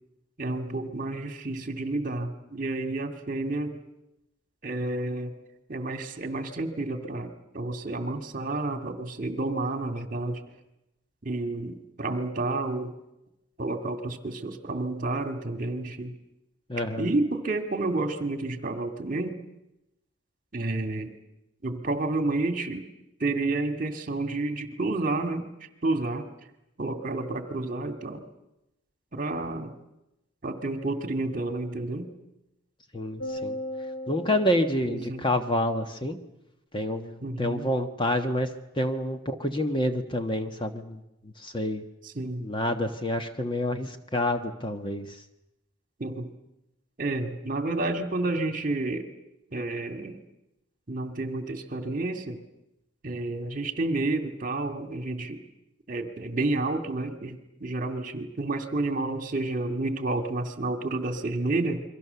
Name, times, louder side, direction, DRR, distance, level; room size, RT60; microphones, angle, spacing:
voice 1, 0.4-3.8 4.6-5.3 5.7-10.4 11.2-12.9 13.6-16.2 17.0-19.4 20.5-21.1 21.6-22.9 23.2-25.5 25.8-26.3 26.8-28.2 29.1-29.7 30.4-32.1 34.8-35.2 37.2-37.7 42.0-42.5 46.0-46.3 47.0-49.1 49.5-50.2 50.9-52.4 53.0-55.4 55.9-61.8, right 2 dB, 40° right, 7 dB, 2.2 m, -30 dB
voice 2, 16.7-17.1 32.9-33.6 34.1-36.2 36.7-41.8 42.4-45.2, left 1 dB, 25° left, 7 dB, 1.2 m, -28 dB
sound 1, 33.2-35.7, left 1 dB, 65° left, 4.7 m, -37 dB
28.5 x 23.5 x 6.9 m, 0.90 s
head